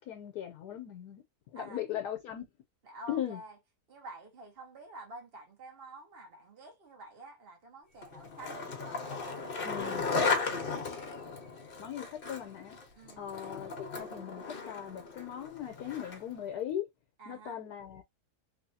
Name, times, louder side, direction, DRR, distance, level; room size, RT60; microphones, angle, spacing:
voice 1, 0.1-1.2 1.5-2.5 3.1-3.4 9.6-10.1 11.8-12.8 13.2-16.9 17.3-18.0, left 10 dB, 75° left, 1.2 m, -39 dB
voice 2, 2.8-3.6 3.9-10.8 13.0-13.2 17.2-17.6, right 2 dB, 35° right, 1.5 m, -49 dB
Skateboard, 8.0-16.4, left 4 dB, 40° left, 0.9 m, -36 dB
3.4 x 3.1 x 2.7 m
omnidirectional pair, 1.8 m